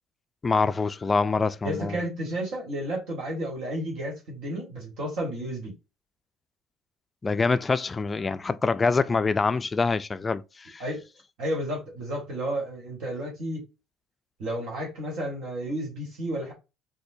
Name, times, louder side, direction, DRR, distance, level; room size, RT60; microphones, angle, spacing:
voice 1, 0.4-2.0 7.2-10.8, left 4 dB, 25° left, 0.3 m, -25 dB
voice 2, 1.6-5.7 10.8-11.0 11.4-13.6 14.4-16.5, right 1 dB, 65° right, 1.5 m, -32 dB
4.1 x 2.2 x 2.7 m
supercardioid pair, 80°, 0 cm